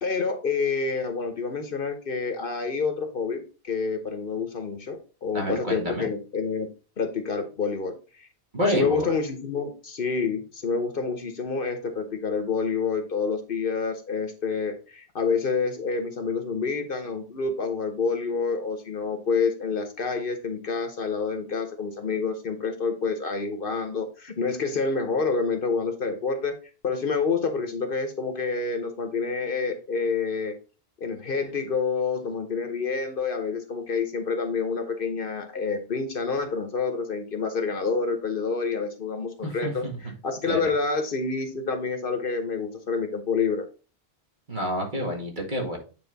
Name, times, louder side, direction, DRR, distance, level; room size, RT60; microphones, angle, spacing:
voice 1, 0.0-6.7 7.0-8.3 8.7-26.6 26.8-30.6 31.0-43.7, left 4 dB, 55° left, 7 dB, 1.0 m, -28 dB
voice 2, 5.3-6.1 8.5-9.1 39.4-40.0 40.4-40.6 44.5-45.8, equal, 45° right, 0 dB, 2.1 m, -28 dB
9.0 x 3.7 x 3.9 m, 0.35 s
omnidirectional pair, 1.1 m